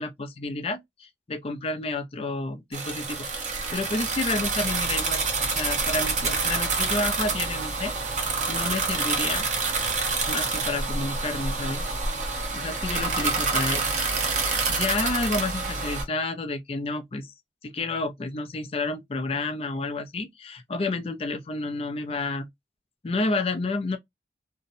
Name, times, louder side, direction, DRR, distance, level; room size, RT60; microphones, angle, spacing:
voice 1, 0.0-9.5 10.3-11.9 12.5-14.1 14.3-17.3 17.6-22.5 23.0-24.0, left 2 dB, 30° left, 0.4 m, -30 dB
sound 1, 2.7-16.0, right 4 dB, 40° right, 0.6 m, -27 dB
2.6 x 2.0 x 2.6 m
head